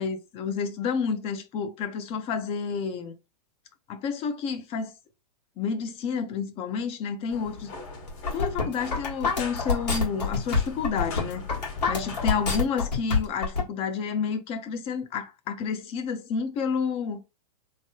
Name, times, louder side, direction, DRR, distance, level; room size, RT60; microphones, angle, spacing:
voice 1, 0.0-3.1 3.9-4.9 5.6-7.7 8.3-11.5 11.9-17.2, left 6 dB, 30° left, 0.5 m, -30 dB
sound 1, 7.3-12.5, left 3 dB, 45° left, 1.3 m, -40 dB
sound 2, 8.1-13.6, left 4 dB, 80° left, 1.5 m, -26 dB
3.2 x 2.2 x 2.8 m
hypercardioid pair, 120°, 21 cm